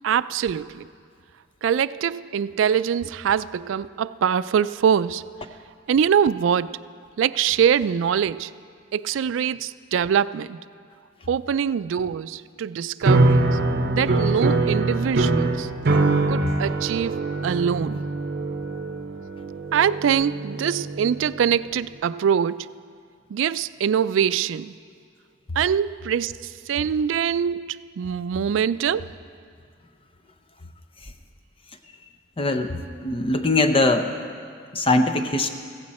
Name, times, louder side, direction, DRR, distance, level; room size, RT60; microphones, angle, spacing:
voice 1, 0.0-0.9 1.6-5.3 5.9-6.8 7.2-8.5 8.9-10.6 11.3-13.6 13.9-15.7 16.3-17.2 17.4-18.0 19.7-22.7 23.3-24.7 25.6-29.1, right 8 dB, 75° right, 17 dB, 0.3 m, -23 dB
sound 1, 13.0-21.4, right 2 dB, 60° right, 0.8 m, -23 dB
voice 2, 32.4-34.1 34.7-35.5, left 2 dB, 30° left, 7 dB, 0.6 m, -21 dB
16.0 x 15.0 x 4.2 m, 2.2 s
head